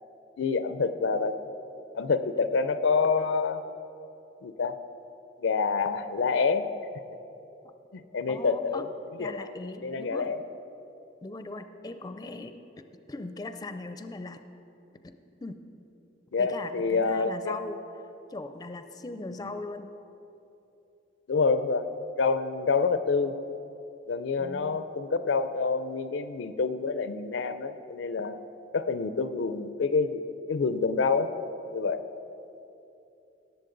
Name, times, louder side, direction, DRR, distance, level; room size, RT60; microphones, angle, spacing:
voice 1, 0.4-1.4 1.9-3.6 4.4-4.8 5.4-6.7 7.9-8.9 9.2-9.5 9.8-10.4 16.3-17.6 19.4-19.5 21.3-21.9 22.2-23.4 24.1-28.4 28.7-30.2 30.5-31.3 31.7-32.0, left 4 dB, 80° left, 12 dB, 0.5 m, -27 dB
voice 2, 8.3-8.9 9.2-10.3 11.2-14.4 15.0-15.6 16.4-17.8 18.3-20.0 24.4-24.9, left 2 dB, 20° left, 9 dB, 0.4 m, -39 dB
18.5 x 7.2 x 3.9 m, 2.9 s
head